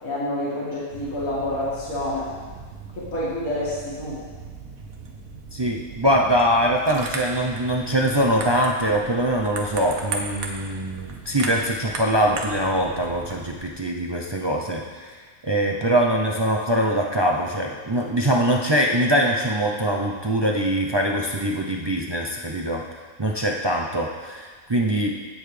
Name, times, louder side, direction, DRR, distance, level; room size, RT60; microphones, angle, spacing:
voice 1, 0.0-2.3 2.9-4.2, left 1 dB, 70° left, -8 dB, 2.3 m, -28 dB
sound 1, 0.9-13.7, right 3 dB, 70° right, 1.5 m, -37 dB
voice 2, 5.5-15.1 15.4-22.8 23.2-25.1, right 1 dB, 40° right, 0 dB, 0.3 m, -23 dB
17.0 x 6.9 x 3.3 m, 1.5 s
omnidirectional pair, 1.5 m